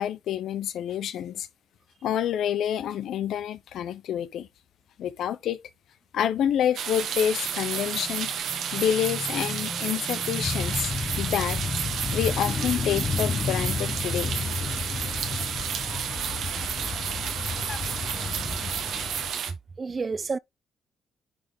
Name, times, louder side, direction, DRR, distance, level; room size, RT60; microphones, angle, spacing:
voice 1, 0.0-1.5 2.0-4.5 5.0-5.6 6.1-8.3 8.7-11.6 12.1-14.3, left 10 dB, 75° left, 0.9 m, -28 dB
sound 1, 6.7-19.5, right 8 dB, 75° right, 1.5 m, -31 dB
Motorcycle / Engine, 7.1-15.6, left 3 dB, 20° left, 1.4 m, -40 dB
sound 2, 10.4-19.3, left 5 dB, 40° left, 0.9 m, -32 dB
voice 2, 19.5-20.4, right 4 dB, 35° right, 0.4 m, -31 dB
10.0 x 3.6 x 3.8 m
cardioid pair, 90°, 0 cm